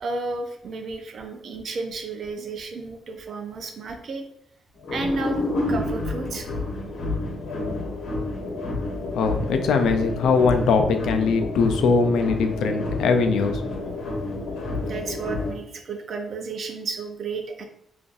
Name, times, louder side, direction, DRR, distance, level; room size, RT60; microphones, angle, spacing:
voice 1, 0.0-4.2 4.9-6.5 14.8-17.6, right 3 dB, 55° right, 4 dB, 0.5 m, -32 dB
sound 1, 4.8-15.5, left 2 dB, 70° left, 0.9 m, -29 dB
voice 2, 9.1-13.6, left 4 dB, 90° left, 6 dB, 0.4 m, -21 dB
3.8 x 2.5 x 2.5 m, 0.74 s
cardioid pair, 140°, 0 cm